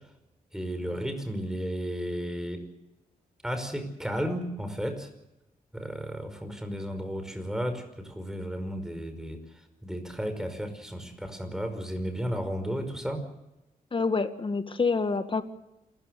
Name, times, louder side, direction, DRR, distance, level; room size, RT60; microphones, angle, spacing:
voice 1, 0.5-2.7 3.4-5.1 5.7-13.2, equal, 5° right, 7 dB, 5.3 m, -33 dB
voice 2, 13.9-15.4, left 4 dB, 35° left, 10 dB, 1.9 m, -27 dB
27.5 x 14.5 x 8.0 m, 0.95 s
cardioid pair, 80°, 15 cm